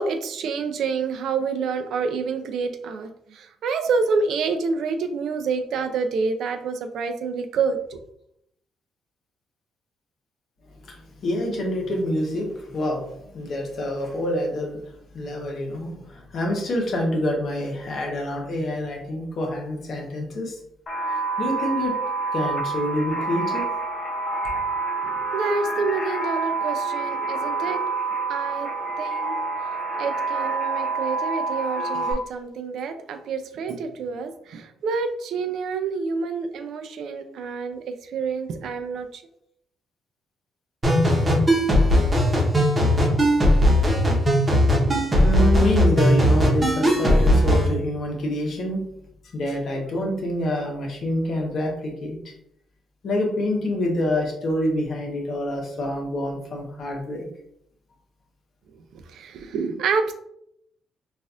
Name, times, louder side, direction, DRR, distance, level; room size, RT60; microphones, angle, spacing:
voice 1, 0.0-8.0 25.0-27.8 28.3-28.7 29.0-29.4 30.0-39.2 59.1-60.1, right 4 dB, 75° right, 7 dB, 0.4 m, -28 dB
voice 2, 10.8-14.8 15.1-20.6 21.4-21.9 22.3-23.7 45.2-48.8 49.3-52.3 53.0-57.2, left 1 dB, 60° left, 0 dB, 1.0 m, -26 dB
sound 1, 20.9-32.1, right 3 dB, 40° left, 0.7 m, -27 dB
sound 2, 40.8-47.7, equal, 25° right, 1.0 m, -18 dB
4.0 x 2.5 x 2.5 m, 0.74 s
cardioid pair, 90°, 0 cm